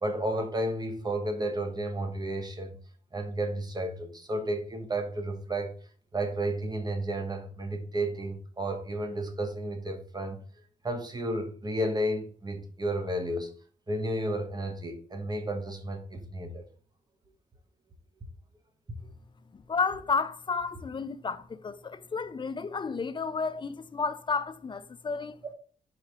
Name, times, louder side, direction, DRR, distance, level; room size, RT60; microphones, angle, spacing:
voice 1, 0.0-2.8 3.1-5.7 6.1-10.4 10.8-13.5 13.9-16.6 18.9-19.0, right 1 dB, 25° right, 1.2 m, -32 dB
voice 2, 19.5-25.4, left 4 dB, 35° left, 0.5 m, -32 dB
4.7 x 4.5 x 4.9 m
cardioid pair, 100°, 15 cm